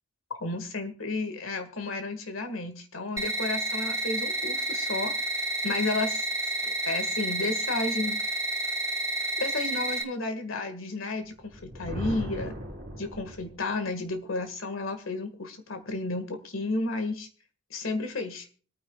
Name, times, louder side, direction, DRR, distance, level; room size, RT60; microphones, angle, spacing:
voice 1, 0.3-5.1 5.6-6.3 6.8-8.2 9.4-12.5 13.0-17.3 17.7-18.5, left 3 dB, 80° left, 7 dB, 1.8 m, -32 dB
sound 1, 3.2-10.0, right 2 dB, 15° right, 1.5 m, -30 dB
Thunder, 11.4-13.8, equal, 50° right, 3.9 m, -38 dB
25.5 x 9.3 x 2.3 m, 0.40 s
head